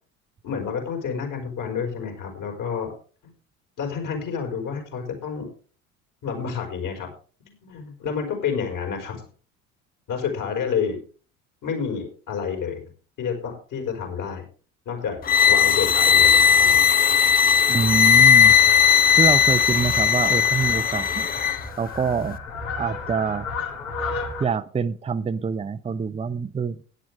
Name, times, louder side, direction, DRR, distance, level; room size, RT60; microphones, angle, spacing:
voice 1, 0.4-2.9 3.2-3.3 3.8-5.5 6.2-7.1 7.4-9.2 10.1-11.0 11.6-12.8 13.2-14.4 14.8-15.2 15.4-16.8, left 6 dB, 50° left, 3 dB, 5.1 m, -29 dB
Fowl, 15.0-24.5, left 3 dB, 75° left, 3.1 m, -35 dB
sound 1, 15.2-21.6, left 8 dB, 20° left, 0.7 m, -17 dB
voice 2, 17.7-18.6 19.2-21.3 21.8-22.4 22.8-23.5 24.4-26.8, right 6 dB, 15° right, 12 dB, 0.7 m, -25 dB
16.0 x 10.5 x 3.4 m, 0.39 s
figure-of-eight pair, 60°, 41 cm